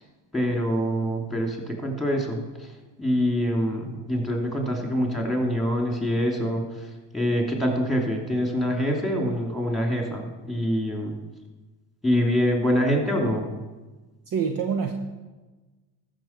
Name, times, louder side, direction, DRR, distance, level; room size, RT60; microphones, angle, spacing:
voice 1, 0.3-2.7 3.0-11.1 12.0-13.5, equal, ahead, 1 dB, 2.9 m, -25 dB
voice 2, 14.3-14.9, right 6 dB, 45° right, 5 dB, 1.0 m, -26 dB
14.0 x 6.3 x 4.5 m, 1.2 s
supercardioid pair, 70°, 49 cm